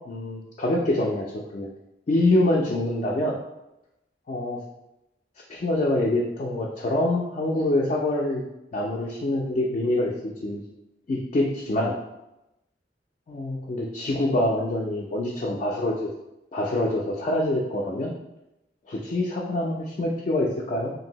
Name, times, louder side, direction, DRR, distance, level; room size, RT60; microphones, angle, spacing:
voice 1, 0.1-1.7 2.1-3.4 4.3-4.6 5.5-8.4 8.7-10.1 10.4-10.6 11.1-12.0 13.3-16.1 16.5-18.1 18.9-20.9, left 1 dB, 40° left, -2 dB, 0.3 m, -25 dB
2.6 x 2.6 x 2.8 m, 0.92 s
head